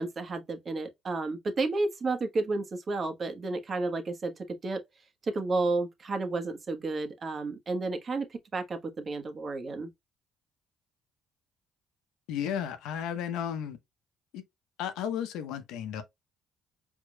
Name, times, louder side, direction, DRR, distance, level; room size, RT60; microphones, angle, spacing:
voice 1, 0.0-4.3 4.6-4.8 5.2-9.9, right 3 dB, 45° right, 1.3 m, -31 dB
voice 2, 12.3-13.8 14.3-14.4 14.8-16.0, left 9 dB, 80° left, 0.8 m, -33 dB
4.6 x 3.7 x 2.3 m
supercardioid pair, 60°, 0 cm